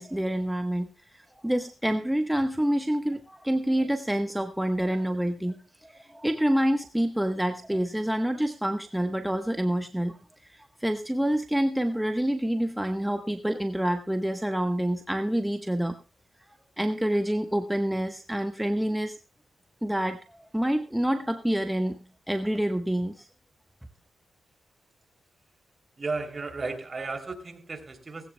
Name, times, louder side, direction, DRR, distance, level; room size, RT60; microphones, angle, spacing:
voice 1, 0.0-5.6 5.8-10.2 10.4-15.9 16.8-19.2 19.8-22.0 22.3-23.3, right 1 dB, 5° right, 6 dB, 1.1 m, -27 dB
voice 2, 26.0-28.3, right 3 dB, 40° right, 6 dB, 3.0 m, -34 dB
18.5 x 16.0 x 2.2 m, 0.33 s
cardioid pair, 70°, 0 cm